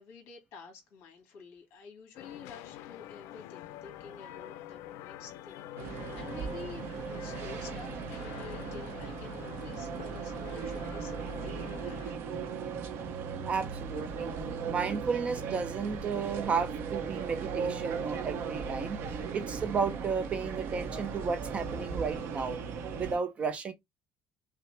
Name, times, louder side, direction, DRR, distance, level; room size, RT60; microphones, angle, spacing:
voice 1, 0.0-12.2, left 5 dB, 55° left, 2.0 m, -50 dB
sound 1, 2.1-12.1, left 12 dB, 80° left, 0.5 m, -46 dB
sound 2, 5.8-23.2, right 5 dB, 55° right, 0.7 m, -37 dB
voice 2, 13.5-14.3 14.7-19.0 19.3-22.6 23.0-23.7, right 5 dB, 25° right, 0.5 m, -33 dB
5.6 x 2.0 x 3.2 m
cardioid pair, 175°, 5 cm